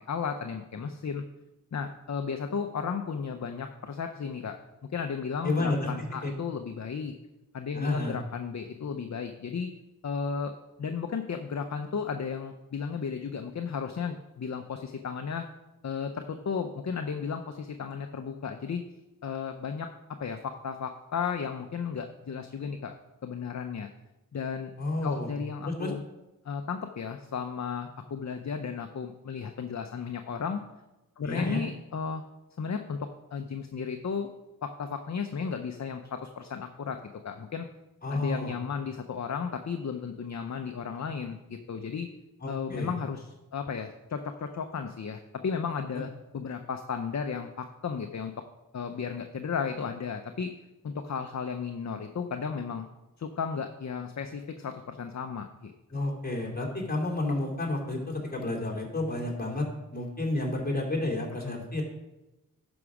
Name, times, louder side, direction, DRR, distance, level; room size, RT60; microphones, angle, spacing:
voice 1, 0.1-1.2 1.7-4.6 4.9-7.1 7.5-9.7 10.0-10.5 10.8-15.5 15.8-18.8 19.2-19.9 20.2-22.9 23.2-23.9 24.3-24.7 25.0-26.0 26.4-30.6 31.2-32.2 32.6-34.3 34.6-37.0 37.2-37.7 38.1-42.1 42.5-48.3 48.7-50.5 50.8-52.9 53.2-55.7 61.4-61.6, left 6 dB, 50° left, 6 dB, 0.7 m, -34 dB
voice 2, 5.4-5.9 6.2-6.3 7.7-8.2 24.8-25.3 25.6-25.9 31.2-31.6 38.0-38.5 42.4-42.9 55.9-59.7 59.9-61.8, left 2 dB, 25° left, -1 dB, 2.7 m, -30 dB
11.0 x 6.1 x 4.9 m, 1.0 s
wide cardioid pair, 80°, 36 cm